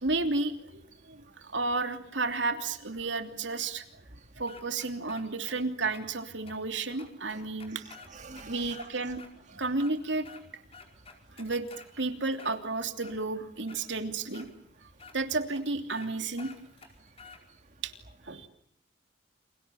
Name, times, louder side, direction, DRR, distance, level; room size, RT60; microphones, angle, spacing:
voice 1, 0.0-0.8 1.1-3.8 4.4-7.8 8.5-9.2 9.5-10.3 11.4-11.6 11.9-14.5 15.1-16.5 17.8-17.9 18.2-18.5, right 3 dB, 70° right, 7 dB, 3.1 m, -32 dB
sound 1, 4.5-5.6 5.9-6.0 6.5-6.6 7.0-8.9 9.2-9.3 9.7-10.4 10.7-11.9 12.3-13.2 13.7-13.8 14.3-14.5 15.0-15.2 15.5-15.6 15.9-16.1 16.4-17.4, left 4 dB, 30° left, 5.2 m, -50 dB
voice 2, 7.7-9.2, right 3 dB, 40° right, 6 dB, 1.8 m, -46 dB
30.0 x 28.0 x 7.1 m, 0.67 s
head